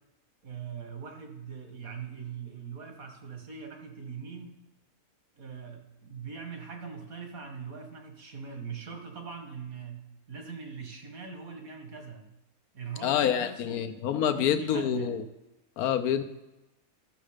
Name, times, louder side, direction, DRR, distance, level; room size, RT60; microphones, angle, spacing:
voice 1, 0.4-4.5 5.4-12.3 12.7-13.8 14.3-15.2, right 6 dB, 70° right, 4 dB, 2.0 m, -41 dB
voice 2, 13.0-15.2 15.8-16.2, left 9 dB, 85° left, 8 dB, 1.2 m, -27 dB
13.0 x 6.3 x 5.0 m, 0.97 s
omnidirectional pair, 1.5 m